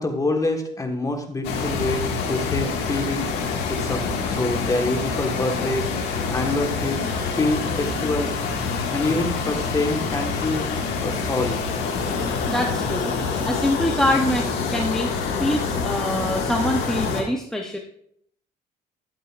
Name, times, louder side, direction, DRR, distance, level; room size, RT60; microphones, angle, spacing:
voice 1, 0.0-3.3 3.8-5.9 6.3-7.1 7.3-8.3 8.9-10.7 11.0-11.6, left 2 dB, 20° left, 4 dB, 1.4 m, -26 dB
sound 1, 1.4-17.2, left 5 dB, 80° left, 1.8 m, -26 dB
voice 2, 12.5-13.2 13.5-15.1 15.4-17.8, left 1 dB, 5° left, 3 dB, 0.7 m, -24 dB
12.0 x 8.0 x 2.5 m, 0.67 s
cardioid pair, 110°, 17 cm